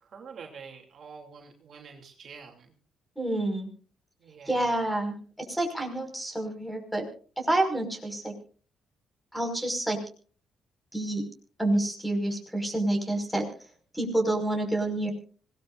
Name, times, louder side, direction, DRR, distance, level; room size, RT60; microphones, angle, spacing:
voice 1, 0.0-2.7 4.2-4.9, right 6 dB, 55° right, 2 dB, 3.0 m, -47 dB
voice 2, 3.2-3.7 4.5-5.2 5.5-7.1 7.5-8.3 9.3-10.0 10.9-11.3 11.6-13.4 13.9-15.1, right 1 dB, ahead, 4 dB, 5.5 m, -28 dB
26.0 x 18.5 x 2.6 m, 0.41 s
cardioid pair, 90°, 0 cm